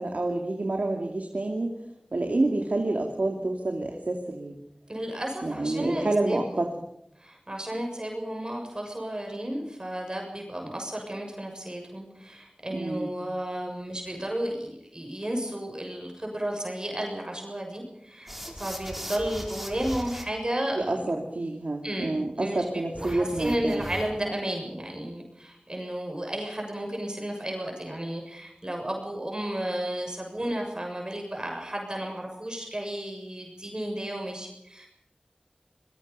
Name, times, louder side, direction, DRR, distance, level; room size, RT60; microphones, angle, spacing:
voice 1, 0.0-1.8 2.1-4.5 5.4-6.7 12.7-13.1 20.8-23.8, right 2 dB, 80° right, 2 dB, 2.5 m, -28 dB
voice 2, 4.9-6.6 7.2-21.1 21.8-34.9, right 1 dB, 30° right, 1 dB, 6.8 m, -33 dB
sound 1, 18.3-20.3 22.9-24.3, equal, 5° right, 4.5 m, -38 dB
26.5 x 21.5 x 5.5 m, 0.78 s
wide cardioid pair, 50°, 3 cm